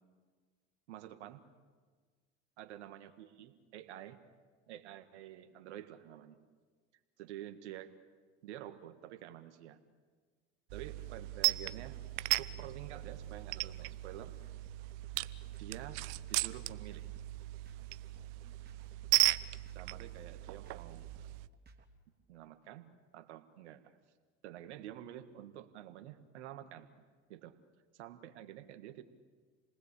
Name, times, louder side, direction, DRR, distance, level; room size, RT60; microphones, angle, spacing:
voice 1, 0.9-1.4 2.6-4.2 4.7-6.4 7.2-7.9 8.4-9.8 10.7-14.3 15.6-16.0 16.3-17.1 19.7-21.1 22.3-24.0 24.4-26.9 27.3-27.6 27.9-29.0, right 12 dB, 85° right, 8 dB, 1.8 m, -49 dB
sound 1, 10.7-21.5, right 22 dB, 65° right, 0.9 m, -36 dB
sound 2, 11.2-21.8, right 3 dB, 30° right, 3.3 m, -58 dB
28.5 x 20.0 x 8.4 m, 1.5 s
hypercardioid pair, 85°, 33 cm